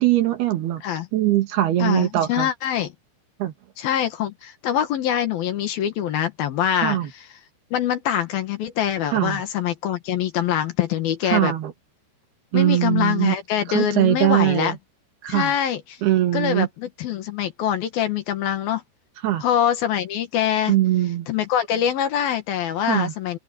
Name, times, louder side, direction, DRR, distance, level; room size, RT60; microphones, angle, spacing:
voice 1, 0.0-0.8 1.1-2.5 3.4-3.5 6.8-7.1 9.1-9.4 11.3-11.7 12.5-13.4 13.7-14.8 15.2-15.5 16.0-16.7 19.2-19.4 20.7-21.3 22.9-23.1, right 14 dB, 70° right, 3.6 m, -21 dB
voice 2, 1.8-2.9 3.8-7.0 7.7-11.5 12.5-14.8 15.3-15.8 16.3-18.8 19.4-20.7 21.3-23.4, left 10 dB, 65° left, 3.1 m, -24 dB
omnidirectional pair, 4.9 m